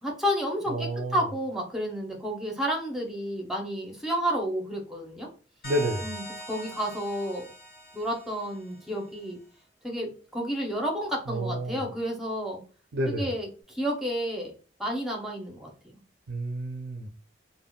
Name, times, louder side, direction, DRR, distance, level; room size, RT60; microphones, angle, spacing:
voice 1, 0.0-5.3 6.0-7.4 7.9-9.4 9.8-12.6 13.1-14.5 14.8-15.7, equal, ahead, 0.6 m, -31 dB
voice 2, 0.7-1.2 5.6-6.1 11.3-11.8 12.9-13.3 16.3-17.1, right 1 dB, 65° right, 0.4 m, -30 dB
sound 1, 5.6-9.0, right 1 dB, 50° left, 1.4 m, -42 dB
3.5 x 2.0 x 2.2 m
head